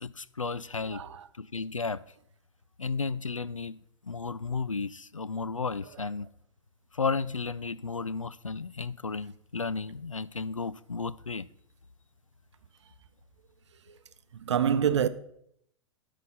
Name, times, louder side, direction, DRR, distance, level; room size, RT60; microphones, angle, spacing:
voice 1, 0.0-1.0 1.4-2.0 2.8-3.8 4.1-6.3 6.9-11.5, left 4 dB, 90° left, 0.4 m, -33 dB
voice 2, 0.9-1.2 14.3-15.1, right 8 dB, 65° right, 0.6 m, -26 dB
11.5 x 5.0 x 5.6 m
figure-of-eight pair, 100°, 16 cm